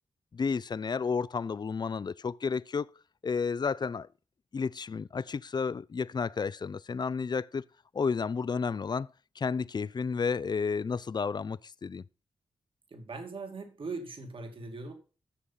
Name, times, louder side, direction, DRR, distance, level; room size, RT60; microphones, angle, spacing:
voice 1, 0.3-2.9 3.2-4.1 4.5-7.7 7.9-9.1 9.4-12.0, left 5 dB, 45° left, 0.5 m, -31 dB
voice 2, 12.9-14.9, right 3 dB, 60° right, 2.5 m, -40 dB
13.0 x 6.9 x 5.6 m
cardioid pair, 55°, 10 cm